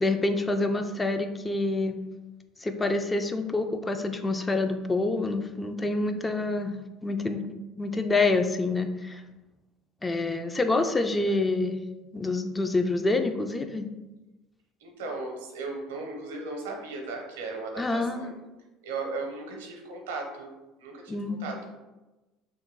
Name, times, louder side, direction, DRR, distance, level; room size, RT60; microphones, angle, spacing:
voice 1, 0.0-2.0 2.6-6.7 7.0-7.4 7.8-9.2 10.0-11.8 12.1-13.9 17.8-18.3 21.1-21.5, left 2 dB, 20° left, 7 dB, 0.3 m, -27 dB
voice 2, 14.8-18.3 18.8-20.5 20.8-21.8, right 3 dB, 85° right, 1 dB, 0.6 m, -36 dB
3.0 x 2.2 x 3.4 m, 1.1 s
hypercardioid pair, 75°, 0 cm